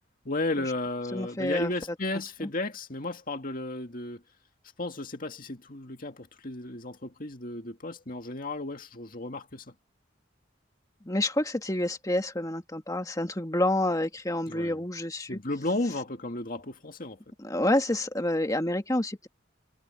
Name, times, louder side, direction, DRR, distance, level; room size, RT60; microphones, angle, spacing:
voice 1, 0.3-4.2 4.8-9.7 14.5-14.8 15.3-17.2, left 2 dB, 45° left, 2.1 m, -34 dB
voice 2, 1.1-1.7 2.4-2.5 11.0-15.4 17.4-19.3, left 1 dB, 20° left, 1.7 m, -28 dB
head